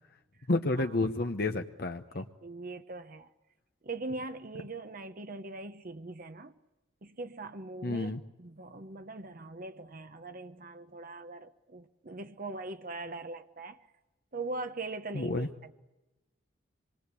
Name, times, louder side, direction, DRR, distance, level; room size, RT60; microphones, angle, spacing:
voice 1, 0.5-2.3 7.8-8.2 15.1-15.5, left 2 dB, 55° left, 1.0 m, -30 dB
voice 2, 2.2-3.3 3.8-6.5 7.0-8.1 8.4-13.8 14.3-15.7, right 3 dB, 45° right, 1.0 m, -41 dB
25.5 x 21.5 x 8.4 m
head